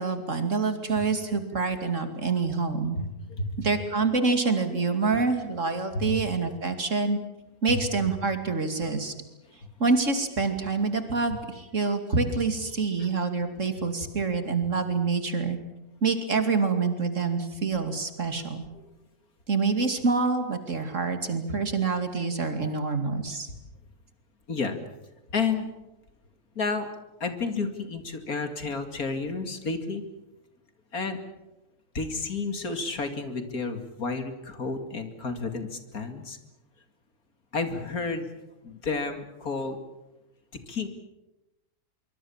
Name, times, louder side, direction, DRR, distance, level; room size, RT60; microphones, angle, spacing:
voice 1, 0.0-3.0 3.6-7.2 7.6-9.1 9.8-15.6 16.0-18.7 19.5-23.5, right 4 dB, 55° right, 7 dB, 2.9 m, -26 dB
voice 2, 3.0-3.6 5.9-6.2 7.7-7.8 9.4-9.5 13.0-13.1 18.7-18.9 24.5-24.8 25.3-25.7 26.5-26.9 27.2-30.0 30.9-31.2 31.9-36.4 37.5-38.3 38.6-39.8 40.5-40.9, left 4 dB, 70° left, 7 dB, 3.0 m, -31 dB
24.5 x 24.0 x 7.3 m, 1.0 s
omnidirectional pair, 1.6 m